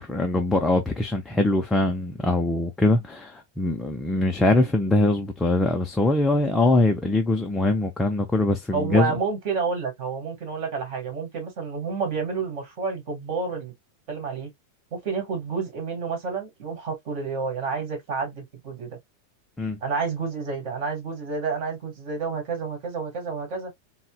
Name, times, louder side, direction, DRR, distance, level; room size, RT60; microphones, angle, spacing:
voice 1, 0.0-9.1 19.6-19.8, left 2 dB, 5° left, 0.4 m, -22 dB
voice 2, 8.7-13.7 14.1-14.5 14.9-19.0 19.8-23.7, right 5 dB, 40° right, 1.8 m, -29 dB
4.1 x 2.0 x 2.3 m
supercardioid pair, 165°, 0 cm